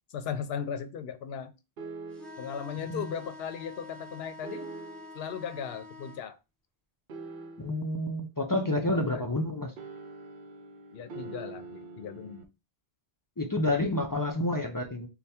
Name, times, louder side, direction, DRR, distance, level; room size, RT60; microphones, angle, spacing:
voice 1, 0.1-1.5 2.4-4.8 5.1-6.4 8.9-9.3 10.9-12.5, left 7 dB, 80° left, 0.8 m, -37 dB
sound 1, 1.8-2.6 4.4-5.2 7.1-7.9 9.8-12.4, right 4 dB, 60° right, 0.8 m, -44 dB
sound 2, 2.1-6.2, left 2 dB, ahead, 0.7 m, -47 dB
voice 2, 7.6-9.7 13.4-15.1, left 1 dB, 30° left, 0.4 m, -29 dB
3.4 x 2.2 x 4.2 m
omnidirectional pair, 1.0 m